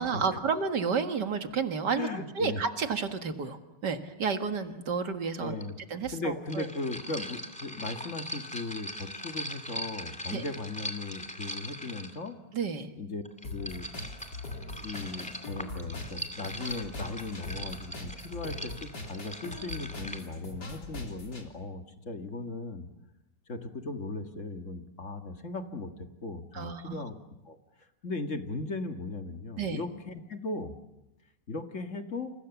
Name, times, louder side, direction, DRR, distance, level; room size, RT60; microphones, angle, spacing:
voice 1, 0.0-5.6 5.9-6.7 10.3-10.4 12.5-12.9 26.5-27.0 29.6-29.8, right 5 dB, 70° right, 7 dB, 2.3 m, -31 dB
voice 2, 1.9-2.6 5.4-5.8 6.1-12.4 13.0-13.2 13.5-13.9 14.8-22.9 23.5-27.2 27.5-27.6 28.0-30.7 31.5-32.3, left 3 dB, 45° left, 6 dB, 2.0 m, -37 dB
sound 1, 5.6-5.7 6.5-12.3 13.3-20.2, equal, 5° left, 2.4 m, -41 dB
sound 2, 13.4-21.4, left 2 dB, 70° left, 4.0 m, -41 dB
29.0 x 28.5 x 7.1 m, 0.95 s
omnidirectional pair, 1.9 m